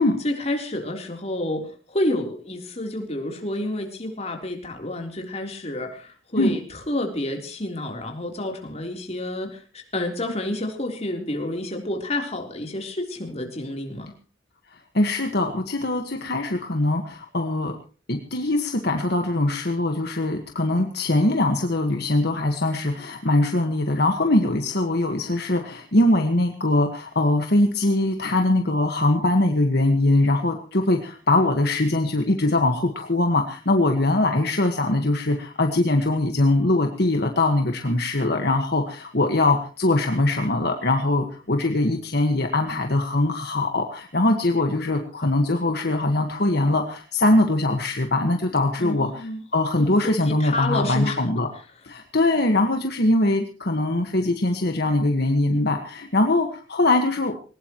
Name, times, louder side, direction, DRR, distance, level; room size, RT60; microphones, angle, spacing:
voice 1, 0.2-6.6 6.9-14.1 48.8-49.4 49.8-51.2, left 1 dB, 35° left, 3 dB, 3.6 m, -29 dB
voice 2, 14.7-17.7 18.1-51.5 51.8-57.4, left 2 dB, 60° left, 4 dB, 1.6 m, -22 dB
21.0 x 19.5 x 3.1 m, 0.39 s
head